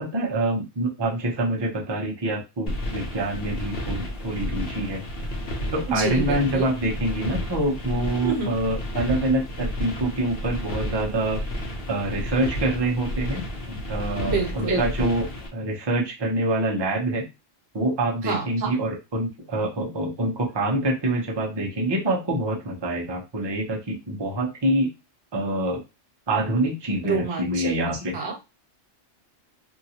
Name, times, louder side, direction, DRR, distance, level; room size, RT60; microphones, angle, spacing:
voice 1, 0.0-5.0 5.7-11.4 11.9-15.3 15.5-17.2 17.7-24.9 25.3-25.8 26.3-28.1, right 1 dB, 25° right, -1 dB, 0.7 m, -26 dB
sound 1, 2.7-15.5, equal, 55° left, 1.0 m, -32 dB
voice 2, 5.9-6.7 8.2-8.5 14.2-14.9 18.2-18.5 27.0-27.8 28.1-28.3, right 4 dB, 65° right, 2 dB, 1.1 m, -27 dB
2.7 x 2.5 x 2.8 m, 0.26 s
omnidirectional pair, 1.2 m